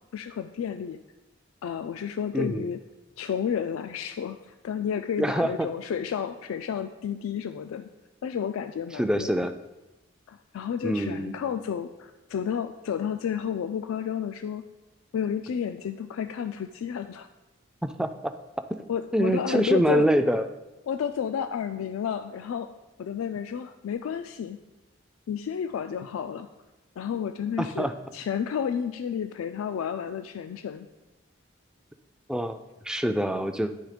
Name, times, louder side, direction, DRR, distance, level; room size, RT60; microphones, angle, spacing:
voice 1, 0.1-1.0 1.6-2.8 3.2-7.9 8.2-9.5 10.3-14.6 15.1-17.3 18.9-20.1 20.9-22.7 23.0-24.6 25.3-26.5 27.0-30.9, left 8 dB, 85° left, 9 dB, 0.3 m, -31 dB
voice 2, 2.3-2.7 5.2-5.7 9.0-9.5 10.8-11.4 17.8-18.3 19.1-20.5 27.6-27.9 32.3-32.6 32.8-33.7, right 1 dB, 5° right, 8 dB, 0.3 m, -25 dB
10.5 x 3.4 x 5.0 m, 1.0 s
head